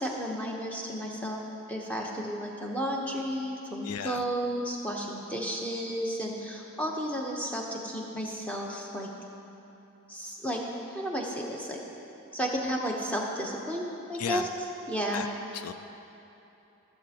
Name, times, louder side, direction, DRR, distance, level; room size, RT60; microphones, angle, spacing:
voice 1, 0.0-1.4 1.7-9.1 10.1-10.6 10.9-11.8 12.3-14.5 14.9-15.2, equal, 5° left, -2 dB, 0.8 m, -32 dB
voice 2, 3.8-4.2 14.2-14.5 15.1-15.3 15.5-15.7, left 8 dB, 85° left, 9 dB, 0.3 m, -34 dB
16.0 x 6.9 x 2.9 m, 2.9 s
head